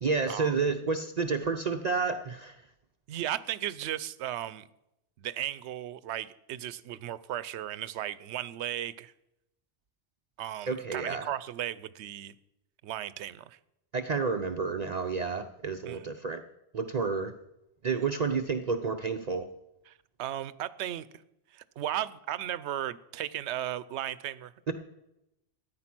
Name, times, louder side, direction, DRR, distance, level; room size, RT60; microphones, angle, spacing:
voice 1, 0.0-2.6 10.7-11.3 13.9-16.4 16.7-17.3 17.8-19.5 24.7-24.8, right 4 dB, 45° right, 7 dB, 0.6 m, -30 dB
voice 2, 3.1-4.7 5.2-9.1 10.4-12.3 12.8-13.6 15.8-16.1 19.9-20.0 20.2-21.1 21.5-24.5, right 12 dB, 80° right, 17 dB, 0.9 m, -35 dB
14.0 x 9.4 x 6.0 m, 0.90 s
omnidirectional pair, 1.1 m